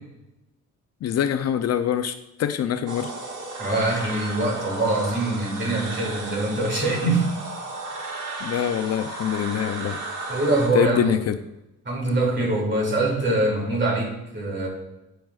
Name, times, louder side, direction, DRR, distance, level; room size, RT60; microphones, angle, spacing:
voice 1, 1.0-3.1 8.4-10.0 10.7-11.4, left 9 dB, 55° left, 10 dB, 0.5 m, -24 dB
sound 1, 2.9-10.7, right 2 dB, 80° right, 1.6 m, -34 dB
voice 2, 3.6-7.2 10.3-11.2 11.8-14.7, right 2 dB, 40° right, -1 dB, 2.5 m, -24 dB
9.0 x 5.8 x 2.4 m, 0.93 s
cardioid pair, 90°, 30 cm